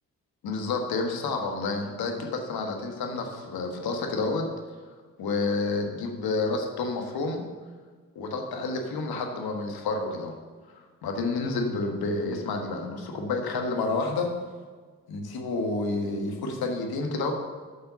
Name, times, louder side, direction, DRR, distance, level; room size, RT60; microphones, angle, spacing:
voice 1, 0.4-4.5 5.2-7.4 8.1-10.3 11.0-14.3 15.1-17.3, left 3 dB, 75° left, 3 dB, 1.5 m, -29 dB
8.2 x 5.6 x 6.9 m, 1.5 s
supercardioid pair, 55°, 37 cm